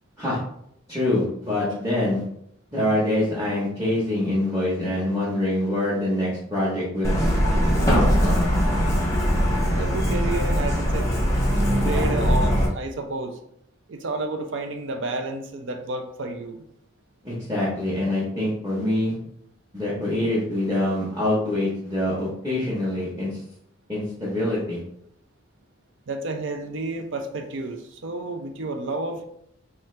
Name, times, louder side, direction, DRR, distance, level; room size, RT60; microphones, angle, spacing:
voice 1, 0.9-2.2 2.7-7.1 7.8-8.5 17.2-19.1 19.7-23.4 23.9-24.8, left 1 dB, 15° right, -8 dB, 1.0 m, -25 dB
Truck, 7.0-12.7, equal, 15° left, 0.7 m, -21 dB
voice 2, 9.7-11.1 11.8-13.4 13.9-16.6 26.1-29.2, right 2 dB, 60° right, 5 dB, 0.5 m, -30 dB
4.3 x 2.5 x 3.2 m, 0.73 s
head